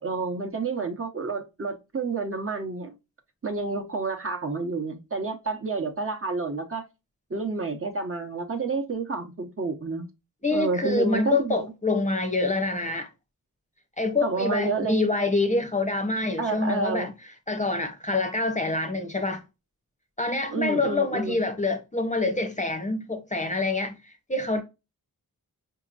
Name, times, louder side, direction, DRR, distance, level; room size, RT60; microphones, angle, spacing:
voice 1, 0.0-2.9 3.4-6.8 7.3-10.1 10.5-11.6 14.2-15.3 16.4-17.1 20.5-21.4, right 3 dB, 35° right, 0.9 m, -29 dB
voice 2, 10.4-13.1 14.0-17.1 17.5-19.4 20.2-24.6, left 2 dB, 20° left, 0.7 m, -26 dB
5.0 x 2.9 x 2.4 m
wide cardioid pair, 80°, 37 cm